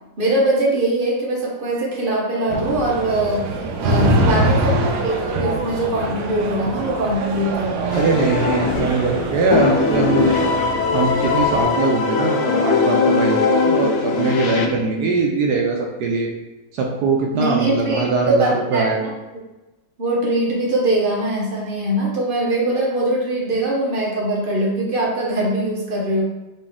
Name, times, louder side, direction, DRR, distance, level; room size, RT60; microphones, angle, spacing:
voice 1, 0.2-3.5 3.8-8.1 17.3-19.1 20.0-26.2, right 1 dB, 45° right, -3 dB, 0.7 m, -22 dB
sound 1, 2.5-11.6, right 1 dB, 85° right, 1.3 m, -24 dB
voice 2, 4.0-4.5 7.9-10.3 10.9-16.3 16.8-19.0, right 3 dB, 70° right, 0 dB, 1.1 m, -21 dB
sound 2, 7.9-9.2 9.5-14.7, left 4 dB, 85° left, 1.3 m, -20 dB
4.0 x 3.1 x 3.5 m, 1.0 s
omnidirectional pair, 1.9 m